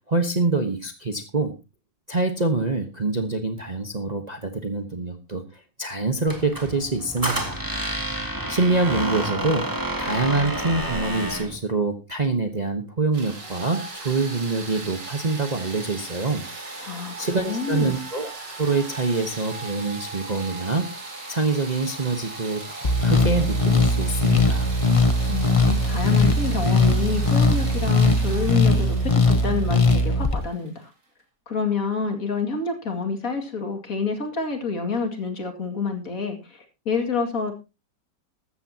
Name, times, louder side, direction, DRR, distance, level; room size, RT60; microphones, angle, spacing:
voice 1, 0.1-1.6 2.1-7.6 8.5-9.7 10.0-16.5 16.8-16.9 17.2-18.3 18.6-20.9 21.3-24.8, right 3 dB, 25° right, 6 dB, 1.1 m, -25 dB
Squeak, 6.3-11.6, right 1 dB, 10° right, 2.1 m, -29 dB
sound 1, 13.1-30.9, right 2 dB, 75° right, 3.6 m, -38 dB
voice 2, 16.8-18.0 25.3-30.9 31.5-37.5, left 4 dB, 50° left, 5 dB, 2.7 m, -28 dB
sound 2, 22.8-30.4, left 2 dB, 25° left, 0.8 m, -20 dB
14.0 x 13.5 x 2.9 m, 0.27 s
omnidirectional pair, 1.9 m